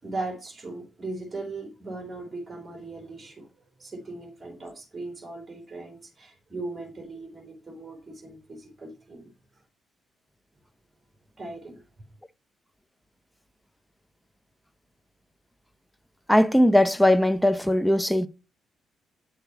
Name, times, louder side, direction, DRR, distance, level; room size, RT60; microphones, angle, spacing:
voice 1, 0.0-3.5 3.8-9.3 11.4-11.8, right 2 dB, 25° right, 3.6 m, -38 dB
voice 2, 16.3-18.3, left 1 dB, 5° left, 0.6 m, -19 dB
8.9 x 6.6 x 5.5 m
cardioid pair, 90°, 0 cm